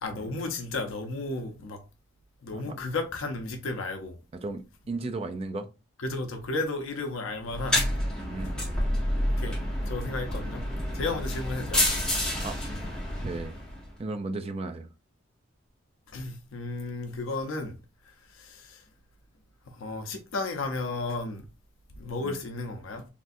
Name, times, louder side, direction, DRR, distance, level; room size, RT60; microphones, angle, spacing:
voice 1, 0.0-1.8 2.4-4.1 6.0-7.8 9.4-9.6 9.9-10.6 10.9-11.9 16.1-17.7 18.3-18.8 19.7-21.5 22.0-23.1, left 3 dB, 80° left, 0.6 m, -33 dB
voice 2, 4.4-5.7 8.2-8.5 12.4-12.6 13.2-13.5 14.0-14.9 22.2-22.4, right 3 dB, 30° right, 0.3 m, -35 dB
sound 1, 7.5-13.9, left 1 dB, 5° left, 1.1 m, -29 dB
3.4 x 2.4 x 2.5 m
head